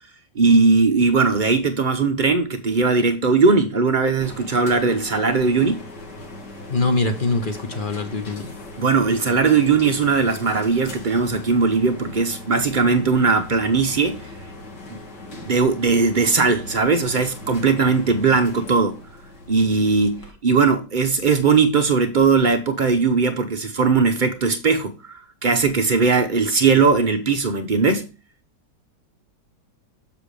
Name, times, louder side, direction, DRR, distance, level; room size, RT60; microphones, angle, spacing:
voice 1, 0.4-5.8 8.8-14.2 14.9-15.0 15.3-19.0 19.5-28.1, right 4 dB, 45° right, 0.6 m, -19 dB
sound 1, 4.2-20.3, left 1 dB, 75° left, 2.5 m, -39 dB
voice 2, 6.7-8.5, left 3 dB, 35° left, 0.9 m, -23 dB
7.4 x 7.1 x 3.3 m
omnidirectional pair, 1.8 m